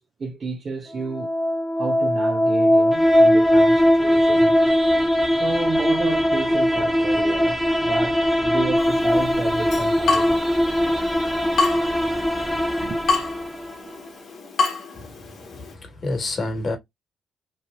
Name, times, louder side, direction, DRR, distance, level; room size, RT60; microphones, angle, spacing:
voice 1, 0.0-1.3 1.8-4.6 5.3-10.5 12.7-13.0, right 4 dB, 50° right, 0.6 m, -31 dB
sound 1, 1.0-13.9, equal, 5° left, 1.2 m, -20 dB
Water tap faucet / Drip, 8.8-15.7, left 4 dB, 65° left, 1.2 m, -29 dB
voice 2, 14.9-16.8, left 2 dB, 50° left, 1.6 m, -29 dB
3.0 x 2.5 x 2.4 m
hypercardioid pair, 45°, 0 cm